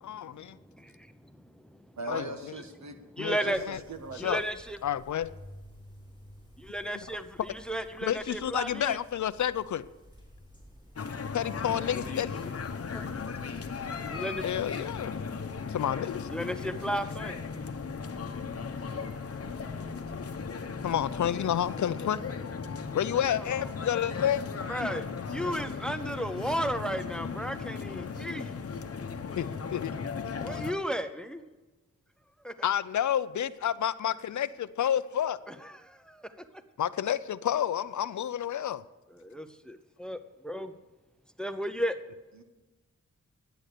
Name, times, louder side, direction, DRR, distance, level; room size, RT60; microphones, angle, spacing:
voice 1, 0.0-0.6 2.1-2.3 3.2-3.4 3.7-3.8 4.1-4.4 4.8-5.3 6.8-7.0 8.0-9.8 11.3-12.3 14.4-15.2 15.7-16.3 20.8-22.2 22.9-24.4 29.4-29.9 32.6-35.4 36.8-38.8, left 10 dB, 70° left, 16 dB, 0.5 m, -30 dB
voice 2, 2.0-3.0 3.4-4.3 42.4-42.5, right 3 dB, 65° right, 7 dB, 1.4 m, -40 dB
voice 3, 3.2-3.6 4.2-4.8 6.6-9.0 11.9-12.1 12.5-12.6 12.9-13.1 14.1-14.4 16.3-17.3 23.1-23.7 24.7-25.1 25.3-28.6 30.4-31.4 32.4-32.5 35.5-35.8 39.2-40.2 40.4-40.7 41.4-42.0, equal, 5° left, 10 dB, 0.7 m, -34 dB
sound 1, 3.4-21.7, equal, 15° right, 4.6 m, -54 dB
sound 2, 11.0-30.7, left 5 dB, 50° left, 0.9 m, -37 dB
10.5 x 8.9 x 6.6 m, 1.2 s
wide cardioid pair, 95°, 31 cm